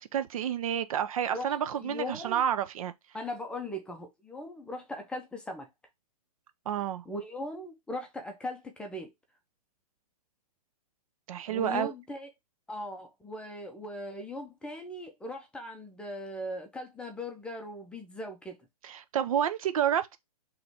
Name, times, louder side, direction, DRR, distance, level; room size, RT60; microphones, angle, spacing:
voice 1, 0.0-2.9 6.7-7.0 11.3-11.9 18.8-20.2, right 9 dB, 60° right, 0.6 m, -29 dB
voice 2, 1.8-2.4 3.1-5.7 7.0-9.1 11.5-12.3 12.7-18.6, left 1 dB, 5° left, 0.6 m, -39 dB
3.8 x 3.1 x 3.3 m
hypercardioid pair, 145°, 20 cm